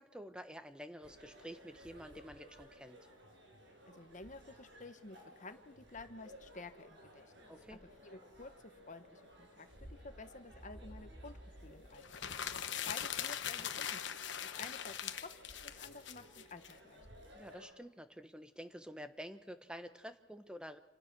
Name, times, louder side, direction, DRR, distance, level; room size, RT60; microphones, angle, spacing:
voice 1, 0.0-3.0 7.5-7.8 17.3-20.8, equal, 5° right, 9 dB, 1.2 m, -49 dB
sound 1, 1.0-17.7, equal, 60° right, 6.7 m, -57 dB
voice 2, 3.9-11.4 11.6-12.2 12.8-15.3 15.6-17.1, left 3 dB, 40° left, 9 dB, 1.3 m, -52 dB
sound 2, 12.0-16.7, left 9 dB, 65° left, 1.1 m, -41 dB
28.0 x 17.5 x 6.2 m, 1.2 s
head